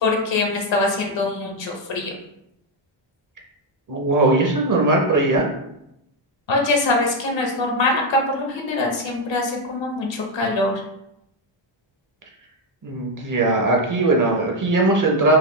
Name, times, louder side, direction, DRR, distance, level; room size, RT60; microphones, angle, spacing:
voice 1, 0.0-2.1 6.5-10.7, left 2 dB, 65° left, 1 dB, 1.1 m, -23 dB
voice 2, 3.9-5.5 12.8-15.4, right 2 dB, 40° right, 0 dB, 0.8 m, -19 dB
4.8 x 2.7 x 3.2 m, 0.81 s
wide cardioid pair, 165°, 48 cm